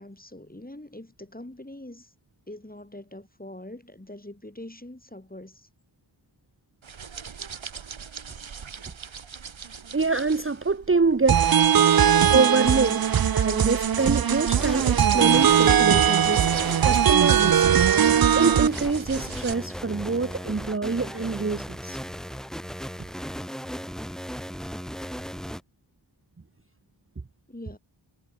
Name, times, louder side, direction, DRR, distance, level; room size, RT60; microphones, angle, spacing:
voice 1, 0.0-2.1 2.5-5.7 27.5-27.8, left 1 dB, 20° left, 5.3 m, -43 dB
sound 1, 6.8-19.5, right 6 dB, 85° right, 1.5 m, -39 dB
voice 2, 9.9-11.5 12.3-13.0 13.3-16.5 16.8-17.9 18.1-22.0, right 4 dB, 30° right, 0.9 m, -25 dB
sound 2, 11.3-18.7, right 9 dB, 50° right, 0.5 m, -20 dB
sound 3, 14.0-14.1 14.5-25.6, equal, ahead, 5.3 m, -37 dB
wide cardioid pair, 55°, 46 cm